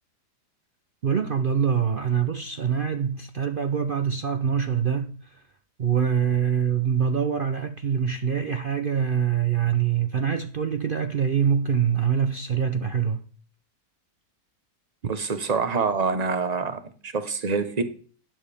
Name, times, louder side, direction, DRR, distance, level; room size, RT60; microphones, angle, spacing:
voice 1, 1.0-5.4 5.8-13.2, right 7 dB, 65° right, 0.5 m, -24 dB
voice 2, 15.0-17.8, right 4 dB, 30° right, 0.9 m, -26 dB
12.0 x 10.0 x 3.5 m
omnidirectional pair, 1.8 m